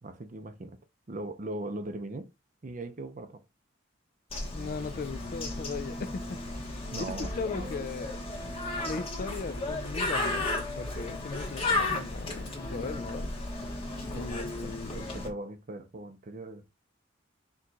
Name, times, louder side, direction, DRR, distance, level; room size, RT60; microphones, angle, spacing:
voice 1, 0.0-0.8 1.1-2.3 2.6-3.4 6.9-7.7 14.1-14.3 14.6-16.6, right 1 dB, 40° right, 0.6 m, -39 dB
Bird, 4.3-15.3, left 2 dB, 30° left, 1.2 m, -34 dB
voice 2, 4.5-6.2 6.5-6.7 7.0-8.1 8.8-13.3 14.1-15.2, left 4 dB, 45° left, 0.3 m, -38 dB
4.6 x 2.4 x 3.9 m
head